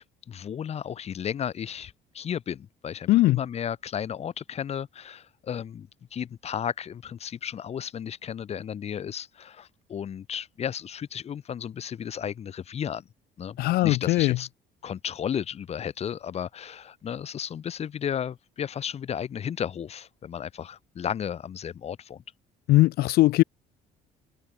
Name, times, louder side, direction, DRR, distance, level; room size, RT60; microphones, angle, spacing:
voice 1, 0.0-13.1 13.4-14.5 14.8-22.2, left 8 dB, 40° left, 0.8 m, -34 dB
voice 2, 3.1-3.4 13.6-14.4 22.7-23.4, left 18 dB, 70° left, 0.4 m, -20 dB
cardioid pair, 110°, 17 cm